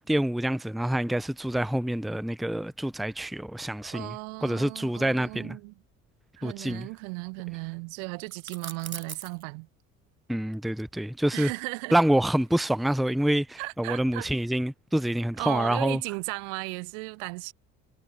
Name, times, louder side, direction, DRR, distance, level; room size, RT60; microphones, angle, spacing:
voice 1, 0.1-4.1 4.4-5.6 6.4-6.9 10.3-11.5 11.9-16.0, right 1 dB, ahead, 0.9 m, -27 dB
voice 2, 3.8-5.7 6.4-9.7 11.3-12.0 13.6-14.3 15.4-17.5, right 39 dB, 60° right, 1.5 m, -36 dB
sound 1, 8.3-9.4 11.3-12.8, right 5 dB, 85° right, 1.1 m, -42 dB
figure-of-eight pair, 50°, 41 cm